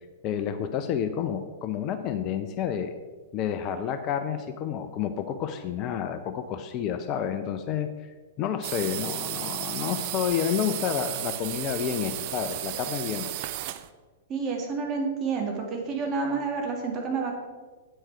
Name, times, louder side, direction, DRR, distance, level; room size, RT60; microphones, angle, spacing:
voice 1, 0.2-2.9 3.3-8.1 8.4-13.3, left 8 dB, 35° left, 9 dB, 0.6 m, -30 dB
sound 1, 8.6-13.9, right 14 dB, 45° right, 0.5 m, -34 dB
voice 2, 14.3-17.3, right 4 dB, 30° right, 1 dB, 2.2 m, -29 dB
9.0 x 8.0 x 4.6 m, 1.3 s
figure-of-eight pair, 105°, 0 cm